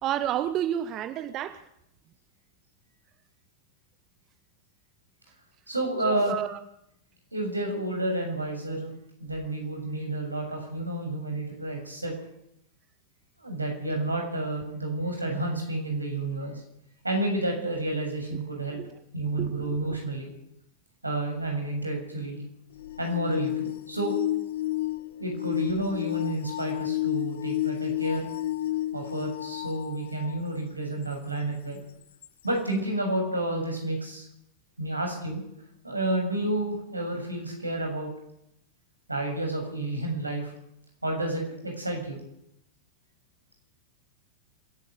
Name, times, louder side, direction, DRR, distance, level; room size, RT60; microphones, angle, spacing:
voice 1, 0.0-1.6 6.0-6.6 18.8-18.9 19.4-19.8, right 11 dB, 35° right, 13 dB, 1.0 m, -30 dB
voice 2, 5.7-6.4 7.3-8.9 9.2-12.1 13.4-16.6 17.0-18.8 19.1-20.3 21.0-22.4 23.0-24.1 25.2-28.3 28.9-31.8 32.4-34.3 34.8-35.4 35.8-38.1 39.1-40.5 41.0-42.2, right 1 dB, 85° right, 2 dB, 7.3 m, -30 dB
sound 1, 22.8-30.4 31.1-31.2 32.2-32.3, left 15 dB, 60° left, 1.1 m, -31 dB
26.5 x 12.0 x 8.3 m, 0.77 s
figure-of-eight pair, 90°, 0 cm